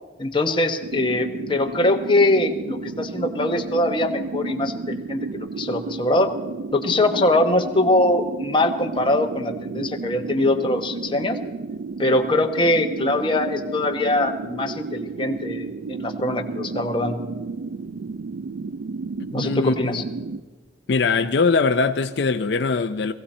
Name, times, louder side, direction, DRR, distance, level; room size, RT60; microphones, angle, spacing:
voice 1, 0.2-6.3 6.7-11.4 12.0-17.2 19.3-20.0, left 2 dB, 25° left, 1.0 m, -22 dB
sound 1, 0.8-20.4, right 4 dB, 70° right, 0.4 m, -32 dB
voice 2, 19.3-20.0 20.9-23.1, left 4 dB, 65° left, 0.5 m, -21 dB
19.0 x 15.5 x 4.3 m
head